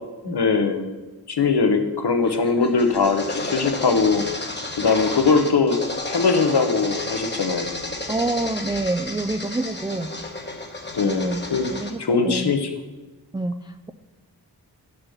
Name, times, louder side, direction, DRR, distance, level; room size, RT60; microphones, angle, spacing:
voice 1, 0.2-0.9 1.3-5.8 6.1-7.7 10.9-11.7 12.0-12.7, left 4 dB, 75° left, 6 dB, 1.0 m, -21 dB
sound 1, 2.3-11.9, left 2 dB, 25° left, 1.1 m, -32 dB
voice 2, 8.1-10.1 11.0-12.5 13.3-13.9, right 2 dB, 10° right, 8 dB, 0.3 m, -27 dB
6.7 x 5.5 x 7.2 m, 1.2 s
wide cardioid pair, 50°, 40 cm